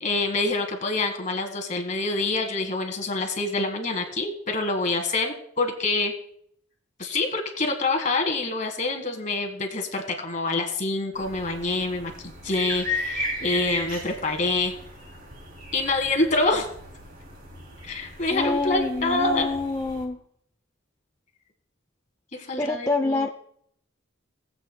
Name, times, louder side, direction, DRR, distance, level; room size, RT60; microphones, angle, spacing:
voice 1, 0.0-6.1 7.0-12.1 12.4-14.7 15.7-16.7 17.8-19.5 22.3-23.3, left 2 dB, 35° left, 5 dB, 1.5 m, -26 dB
sound 1, 11.1-20.1, left 1 dB, 45° right, 2.7 m, -36 dB
voice 2, 18.3-20.2 22.6-23.3, left 3 dB, 15° left, 5 dB, 0.3 m, -26 dB
19.5 x 7.9 x 2.2 m, 0.68 s
head